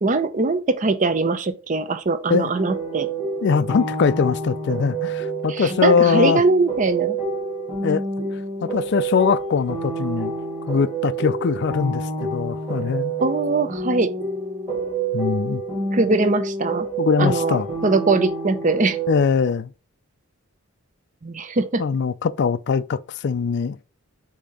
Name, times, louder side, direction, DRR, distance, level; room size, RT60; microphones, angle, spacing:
voice 1, 0.0-3.1 5.5-7.2 13.2-14.1 15.9-16.9 17.2-19.0 21.2-21.8, right 3 dB, 35° right, 0.6 m, -21 dB
sound 1, 2.5-19.2, right 2 dB, 20° right, 2.5 m, -28 dB
voice 2, 3.4-6.4 7.8-8.0 8.6-10.3 10.7-13.1 15.1-15.6 17.0-17.7 19.1-19.7 21.8-23.8, left 5 dB, 55° left, 0.4 m, -21 dB
6.8 x 2.9 x 5.1 m
head